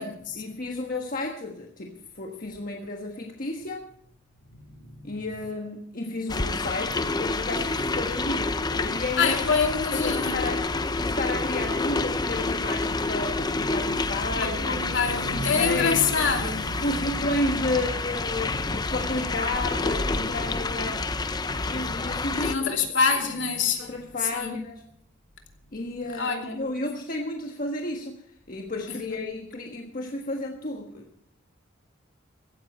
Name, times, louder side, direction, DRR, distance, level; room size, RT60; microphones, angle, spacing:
voice 1, 0.0-3.9 5.0-9.5 9.9-10.6 11.0-14.9 15.2-16.3 16.8-21.1 21.6-22.7 23.8-24.8 25.7-31.3, left 2 dB, 45° left, 1.4 m, -32 dB
voice 2, 4.5-5.1 9.2-10.4 13.5-13.8 14.3-17.6 22.4-23.9 24.3-24.6 26.2-26.6 28.9-29.2, left 5 dB, 60° left, 2.8 m, -26 dB
sound 1, 6.3-22.6, left 3 dB, 20° left, 0.6 m, -28 dB
16.0 x 13.5 x 4.4 m
head